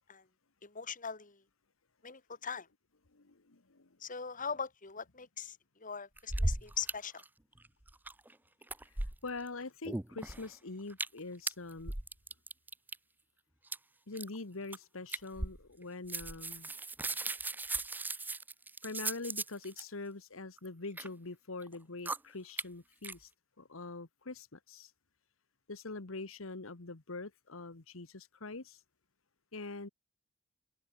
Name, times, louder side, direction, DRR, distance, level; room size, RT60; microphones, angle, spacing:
voice 1, 0.6-1.4 2.0-2.7 4.0-7.2, left 6 dB, 40° left, 2.8 m, -41 dB
voice 2, 3.1-3.9 8.9-11.9 14.1-16.7 18.8-23.3 23.6-24.9 25.7-28.8 29.5-29.9, left 3 dB, 80° left, 1.5 m, -44 dB
sound 1, 6.2-6.9 7.2-7.3 7.6-8.3 8.6-9.5 9.9-10.5 10.9-11.2 11.5-13.0 13.7-13.8 14.2-14.4 14.7-14.8 15.1-15.8 16.1-19.8 20.6-21.1 21.6-21.8 22.1-22.2 22.6-22.7 23.0-23.1, right 2 dB, 10° right, 0.6 m, -37 dB
head